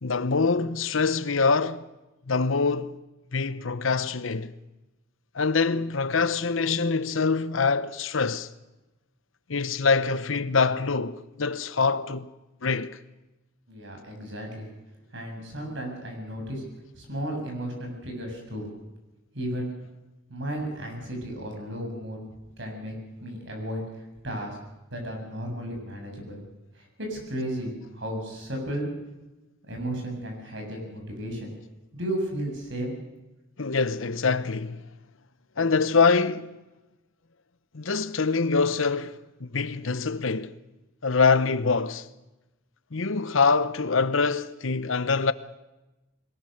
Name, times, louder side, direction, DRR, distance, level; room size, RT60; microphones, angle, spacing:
voice 1, 0.0-1.9 2.3-3.0 3.3-4.5 5.3-8.5 9.5-12.3 12.6-13.0 33.6-34.8 35.6-36.6 37.7-40.5 41.0-42.1 42.9-45.3, left 4 dB, 75° left, 0.9 m, -24 dB
voice 2, 13.7-14.7 15.1-16.6 16.9-18.7 19.3-19.7 20.3-22.2 22.6-22.9 23.2-23.8 24.2-24.6 24.9-26.4 26.7-28.9 29.7-31.5 31.9-32.9, right 1 dB, 60° right, 7.3 m, -34 dB
21.5 x 19.5 x 6.6 m
head